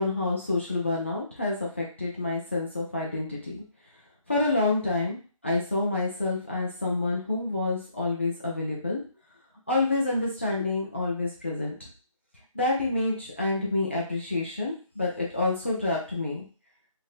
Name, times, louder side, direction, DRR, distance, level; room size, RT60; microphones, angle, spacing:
voice 1, 0.0-3.6 4.3-5.2 5.4-9.0 9.7-11.9 12.5-16.4, left 2 dB, 20° left, -4 dB, 0.4 m, -28 dB
3.5 x 2.7 x 2.4 m, 0.37 s
figure-of-eight pair, 165°, 18 cm